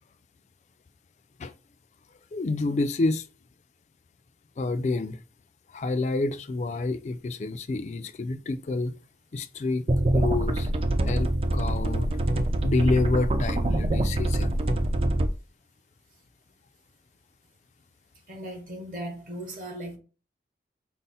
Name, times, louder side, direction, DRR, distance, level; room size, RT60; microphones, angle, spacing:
voice 1, 2.3-3.2 4.6-5.2 5.7-9.0 9.3-9.8 10.1-10.7 11.0-12.1 12.6-14.5, left 3 dB, 40° left, 0.3 m, -28 dB
sound 1, 9.9-15.3, right 1 dB, 30° right, 0.4 m, -25 dB
voice 2, 18.3-20.0, right 1 dB, 45° right, 1.1 m, -37 dB
5.4 x 2.0 x 4.0 m
head